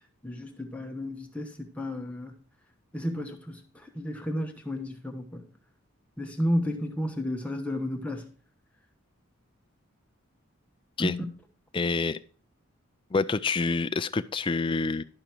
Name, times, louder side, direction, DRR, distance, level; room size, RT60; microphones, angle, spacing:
voice 1, 0.2-2.3 2.9-5.4 6.2-8.3 11.0-11.2, left 1 dB, 5° left, 0.9 m, -32 dB
voice 2, 11.7-12.2 13.1-15.0, left 4 dB, 25° left, 0.3 m, -27 dB
11.5 x 5.1 x 4.4 m
head